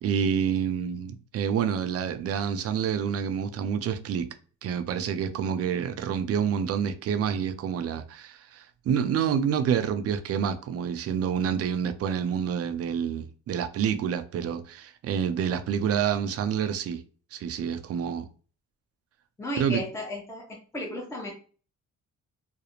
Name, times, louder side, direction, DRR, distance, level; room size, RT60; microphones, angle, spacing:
voice 1, 0.0-4.3 4.6-17.0 17.3-18.2 19.6-19.8, right 8 dB, 55° right, 0.4 m, -28 dB
voice 2, 19.4-20.5 20.7-21.3, left 1 dB, 10° left, 0.6 m, -34 dB
2.4 x 2.0 x 2.8 m
cardioid pair, 90°, 30 cm